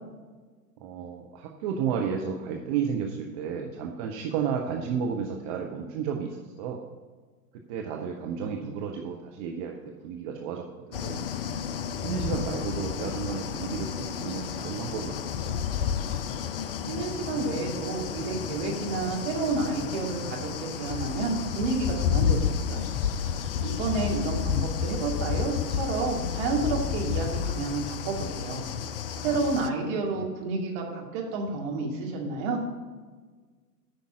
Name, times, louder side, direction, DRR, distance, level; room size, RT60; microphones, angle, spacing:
voice 1, 0.8-6.8 7.7-11.2 12.0-15.6 29.2-29.4 29.9-30.3, right 7 dB, 25° right, 2 dB, 0.6 m, -32 dB
sound 1, 10.9-29.7, left 8 dB, 40° left, 0.5 m, -31 dB
voice 2, 16.9-22.9 23.3-28.6 29.2-32.6, right 3 dB, 40° right, -1 dB, 2.3 m, -30 dB
9.1 x 5.3 x 6.1 m, 1.4 s
figure-of-eight pair, 100°, 47 cm